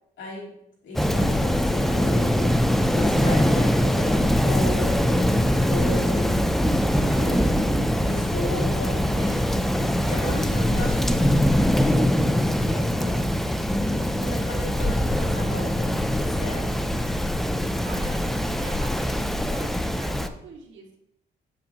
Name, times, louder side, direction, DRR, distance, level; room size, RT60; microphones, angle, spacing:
voice 1, 0.2-0.5 0.8-7.7 8.0-9.4 10.1-13.2 13.9-16.9, left 1 dB, 70° left, -4 dB, 3.2 m, -36 dB
Rain, 0.9-20.3, equal, ahead, 0.5 m, -22 dB
voice 2, 6.9-7.6 17.8-19.2 19.5-21.0, right 4 dB, 70° right, -1 dB, 2.0 m, -43 dB
8.6 x 7.5 x 3.0 m, 0.75 s
cardioid pair, 90°, 20 cm